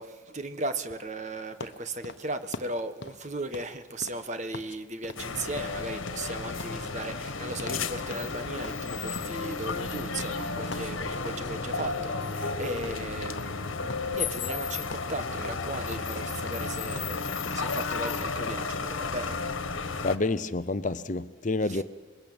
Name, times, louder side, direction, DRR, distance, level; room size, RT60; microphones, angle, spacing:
voice 1, 0.0-17.2 17.5-19.4 21.6-21.8, right 2 dB, 35° right, 1.5 m, -37 dB
Footsteps Tile Male Tennis Shoes Medium Pace, 1.6-4.8 5.0-5.3 5.6-7.9 8.1-8.4 8.6-11.5 11.8-12.6 12.8-13.1 13.4-14.6 14.9-15.7 15.9-18.7, left 3 dB, 60° left, 1.2 m, -43 dB
sound 1, 5.2-20.2, left 4 dB, 75° left, 1.6 m, -33 dB
voice 2, 20.0-21.8, left 2 dB, 35° left, 0.7 m, -28 dB
27.0 x 22.0 x 8.9 m
head